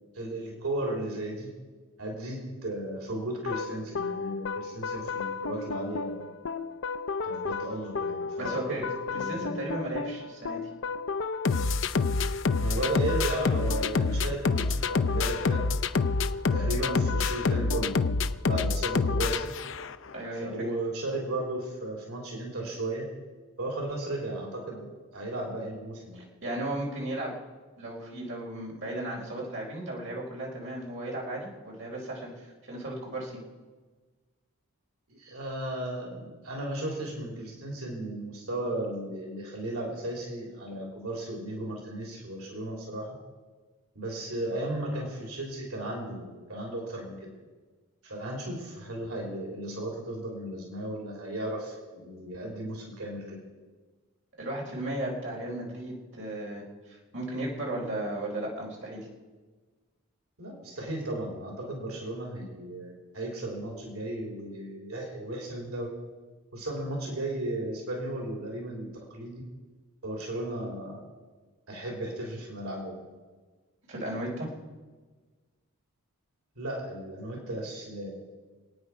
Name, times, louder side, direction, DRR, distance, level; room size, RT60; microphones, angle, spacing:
voice 1, 0.1-1.5 2.0-6.2 7.2-9.6 12.6-15.6 16.5-18.0 18.5-19.6 20.3-23.1 23.6-24.9 25.1-26.2 35.1-43.2 44.0-47.2 48.0-53.4 60.4-65.9 66.5-69.4 70.0-71.0 71.7-73.0 76.6-78.2, right 1 dB, 85° right, -1 dB, 3.5 m, -35 dB
sound 1, 3.5-20.1, left 4 dB, 60° left, 0.6 m, -29 dB
voice 2, 8.4-8.8 9.1-10.6 20.1-20.5 26.1-27.3 27.8-32.3 32.7-33.4 54.4-59.1 73.9-74.5, right 1 dB, 60° right, -3 dB, 4.2 m, -35 dB
28.0 x 9.4 x 4.9 m, 1.4 s
head